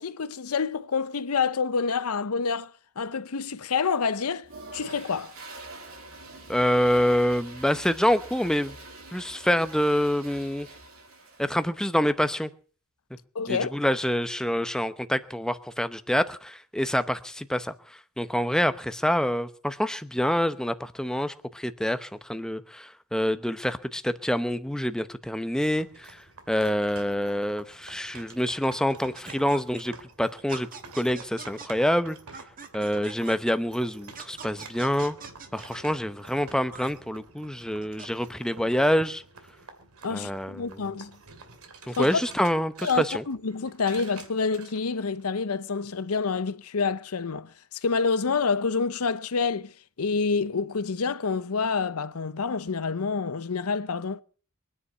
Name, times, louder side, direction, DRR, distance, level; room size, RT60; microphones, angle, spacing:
voice 1, 0.0-5.3 13.3-13.7 40.0-41.2 41.9-42.2 42.8-49.7 50.0-54.2, left 5 dB, 90° left, 0.7 m, -28 dB
Toilet flush, 4.4-11.7, right 2 dB, 65° right, 4.8 m, -45 dB
voice 2, 6.5-8.7 9.1-10.7 11.4-12.5 13.5-17.7 18.2-29.9 30.2-30.7 30.9-32.2 32.7-35.2 35.5-39.2 40.1-40.8 41.9-43.2, equal, 5° left, 0.8 m, -26 dB
sound 1, 25.6-45.4, right 4 dB, 85° right, 2.5 m, -49 dB
sound 2, 29.2-29.8 30.5-31.7 32.3-33.5 34.1-36.0 36.7-36.9 37.8-38.1, right 5 dB, 40° right, 1.5 m, -43 dB
22.5 x 9.9 x 5.5 m
head